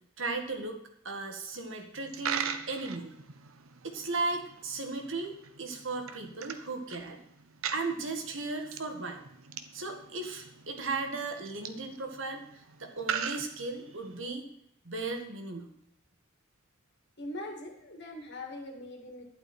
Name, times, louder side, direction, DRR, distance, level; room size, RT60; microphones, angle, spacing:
voice 1, 0.2-0.8 1.0-3.1 3.8-7.2 7.7-9.2 9.7-14.5 14.9-15.7, right 3 dB, 65° right, 4 dB, 1.9 m, -36 dB
Coin (dropping), 1.9-14.2, right 7 dB, 80° right, 1.0 m, -41 dB
voice 2, 17.2-19.2, left 1 dB, 55° left, 3 dB, 2.5 m, -41 dB
12.0 x 11.0 x 4.5 m, 0.76 s
head